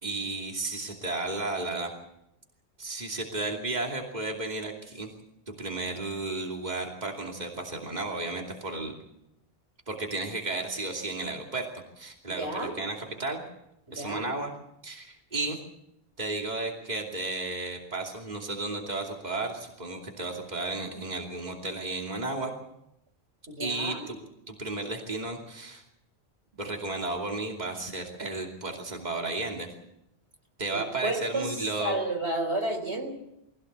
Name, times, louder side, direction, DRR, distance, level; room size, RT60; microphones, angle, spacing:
voice 1, 0.0-1.9 2.8-5.1 5.5-8.9 9.9-11.7 12.0-13.4 13.9-14.5 14.8-15.6 16.2-22.5 23.6-24.2 24.5-25.8 26.5-29.7 30.6-32.0, right 2 dB, 40° right, 1 dB, 2.9 m, -33 dB
voice 2, 12.4-12.8 13.9-14.3 23.5-24.1 30.7-33.1, right 2 dB, 90° right, 5 dB, 4.7 m, -32 dB
24.0 x 17.0 x 8.1 m, 0.83 s
omnidirectional pair, 1.1 m